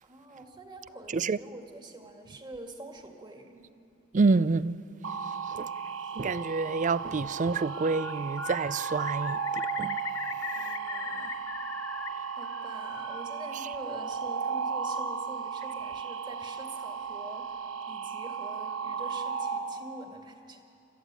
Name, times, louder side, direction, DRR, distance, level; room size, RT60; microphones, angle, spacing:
voice 1, 0.0-3.7 10.6-11.5 12.3-17.5 17.9-20.6, right 1 dB, 25° right, 2.0 m, -46 dB
voice 2, 4.1-4.8 5.5-5.7 6.2-10.0, right 4 dB, 40° right, 0.5 m, -28 dB
sound 1, 5.0-19.6, right 6 dB, 90° right, 1.5 m, -35 dB
Bird, 7.5-8.1 8.4-12.1 12.4-13.2, left 6 dB, 85° left, 1.0 m, -39 dB
29.0 x 13.5 x 9.0 m
head